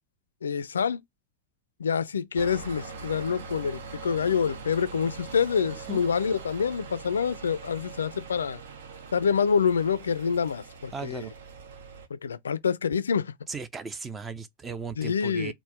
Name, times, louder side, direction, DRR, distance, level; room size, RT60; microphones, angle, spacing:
voice 1, 0.4-1.0 1.8-8.6 9.1-11.3 12.2-13.3 15.0-15.5, left 6 dB, 70° left, 0.4 m, -26 dB
sound 1, 2.4-12.1, right 5 dB, 60° right, 0.6 m, -42 dB
voice 2, 10.9-11.3 13.5-15.5, right 5 dB, 15° right, 0.5 m, -36 dB
4.5 x 2.1 x 3.4 m
figure-of-eight pair, 90°, 0 cm